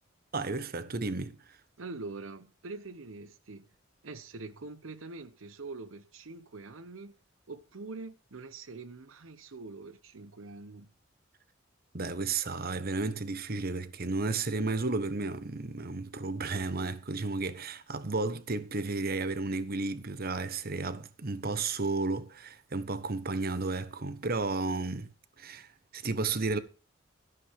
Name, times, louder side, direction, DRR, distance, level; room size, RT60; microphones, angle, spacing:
voice 1, 0.3-1.4 11.9-25.1 25.4-26.6, right 3 dB, 50° right, 1.1 m, -33 dB
voice 2, 1.8-3.7 4.0-7.1 7.5-10.9, right 3 dB, 85° right, 0.8 m, -44 dB
13.5 x 11.0 x 3.5 m
head